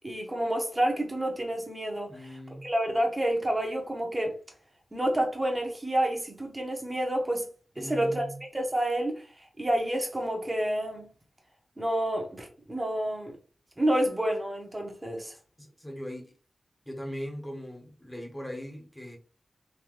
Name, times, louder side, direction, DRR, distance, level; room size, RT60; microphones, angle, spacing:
voice 1, 0.0-4.3 4.9-7.5 7.8-8.3 8.5-11.1 11.8-13.4 13.8-15.3, right 1 dB, 20° right, 1.4 m, -29 dB
voice 2, 2.1-2.7 7.8-8.4 15.6-16.3 16.9-19.2, equal, 5° left, 1.3 m, -39 dB
3.8 x 3.0 x 3.1 m
cardioid pair, 55°, 0 cm